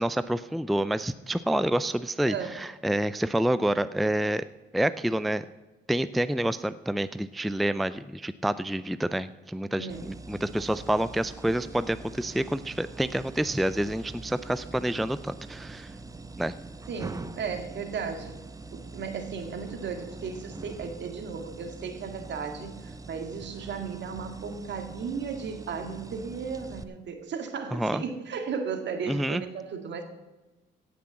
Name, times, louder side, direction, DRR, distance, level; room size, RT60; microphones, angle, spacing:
voice 1, 0.0-4.4 4.7-5.4 5.9-15.9 16.4-16.5 27.7-28.0 29.1-29.4, right 1 dB, ahead, 14 dB, 0.4 m, -28 dB
voice 2, 2.3-2.6 9.8-10.1 16.9-18.4 18.7-30.0, right 6 dB, 65° right, 6 dB, 2.0 m, -35 dB
sound 1, 9.9-26.8, right 3 dB, 15° right, 0.7 m, -43 dB
16.5 x 6.1 x 7.1 m, 1.1 s
cardioid pair, 90°, 20 cm